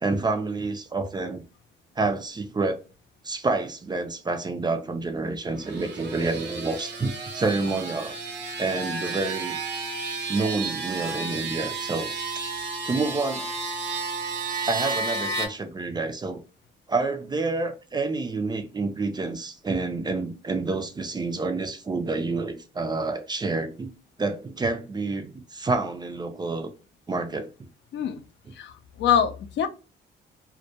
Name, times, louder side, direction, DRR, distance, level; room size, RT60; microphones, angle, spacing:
voice 1, 0.0-1.4 2.0-2.8 3.2-8.1 8.6-9.6 10.3-12.1 12.9-13.5 14.7-16.4 16.9-23.9 24.2-26.7 27.1-27.5, right 3 dB, 20° right, 0.4 m, -28 dB
sound 1, 5.5-15.5, right 3 dB, 60° right, 0.8 m, -32 dB
voice 2, 28.6-29.7, left 8 dB, 65° left, 0.4 m, -24 dB
2.2 x 2.1 x 2.7 m
cardioid pair, 90°, 20 cm